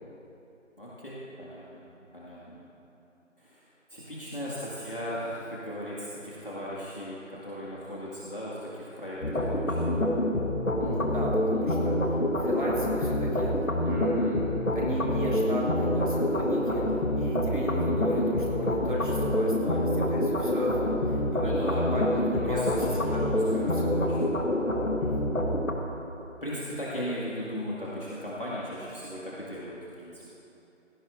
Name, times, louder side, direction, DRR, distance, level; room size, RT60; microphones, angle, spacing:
voice 1, 0.8-1.8 2.1-2.6 3.4-3.6 3.9-10.0 16.6-17.3 21.4-22.1 22.4-24.2 26.4-30.3, equal, 45° left, -8 dB, 2.1 m, -37 dB
sound 1, 9.2-25.7, left 1 dB, 85° left, 1.6 m, -27 dB
voice 2, 10.8-11.9 12.4-13.5 13.8-16.8 17.1-22.8 23.3-24.2 25.0-25.1, equal, 40° right, -5 dB, 2.7 m, -34 dB
18.0 x 16.5 x 2.7 m, 3.0 s
figure-of-eight pair, 175°, 38 cm